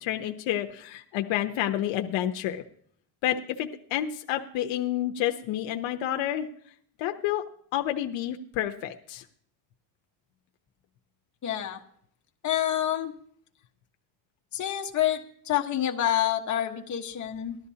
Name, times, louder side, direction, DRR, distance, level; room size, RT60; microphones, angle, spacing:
voice 1, 0.0-2.6 3.2-6.5 7.0-7.4 7.7-9.2, left 12 dB, 80° left, 5 dB, 0.9 m, -29 dB
voice 2, 11.4-11.8 12.4-13.1 14.5-15.2 15.4-17.6, left 11 dB, 40° left, 1 dB, 1.4 m, -27 dB
19.0 x 12.0 x 2.8 m, 0.62 s
cardioid pair, 145°, 45 cm